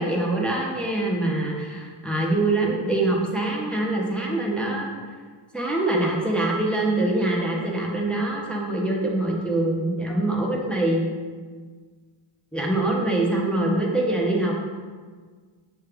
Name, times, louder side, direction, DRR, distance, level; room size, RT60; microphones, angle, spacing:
voice 1, 0.0-4.9 5.5-11.1 12.5-14.5, right 2 dB, ahead, -3 dB, 0.6 m, -24 dB
5.7 x 2.4 x 3.4 m, 1.5 s
wide cardioid pair, 100°, 49 cm